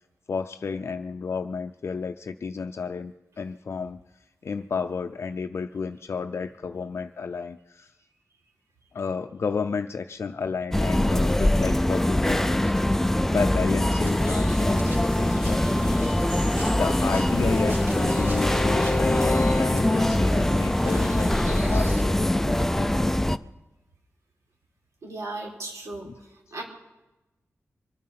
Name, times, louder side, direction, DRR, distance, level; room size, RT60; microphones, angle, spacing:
voice 1, 0.3-4.0 4.4-7.9 8.9-12.7 13.3-16.2 16.8-23.1 26.0-26.1, left 5 dB, 55° left, 6 dB, 0.5 m, -32 dB
sound 1, 10.7-23.4, left 1 dB, 5° left, 0.4 m, -23 dB
sound 2, 14.0-22.0, right 1 dB, 50° right, 2.8 m, -35 dB
Bowed string instrument, 16.6-20.2, left 3 dB, 30° left, 0.9 m, -30 dB
voice 2, 25.0-26.1 26.5-26.6, right 2 dB, 80° right, -1 dB, 4.0 m, -35 dB
24.5 x 9.6 x 5.8 m, 1.0 s
wide cardioid pair, 125°, 5 cm